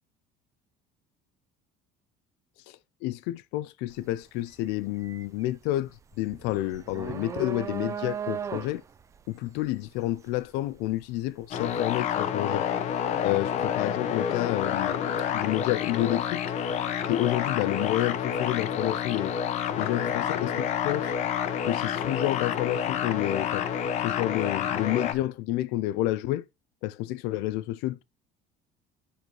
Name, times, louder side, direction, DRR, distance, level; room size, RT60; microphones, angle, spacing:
voice 1, 2.7-8.8 9.3-12.7 13.2-16.4 17.0-19.3 19.8-21.1 21.7-23.6 24.0-26.4 26.8-28.0, left 15 dB, 85° left, 0.4 m, -29 dB
sound 1, 3.9-4.2 4.5-11.5, right 7 dB, 20° right, 0.4 m, -37 dB
sound 2, 11.5-25.1, left 8 dB, 45° left, 0.7 m, -29 dB
10.0 x 4.6 x 2.9 m
cardioid pair, 170°, 17 cm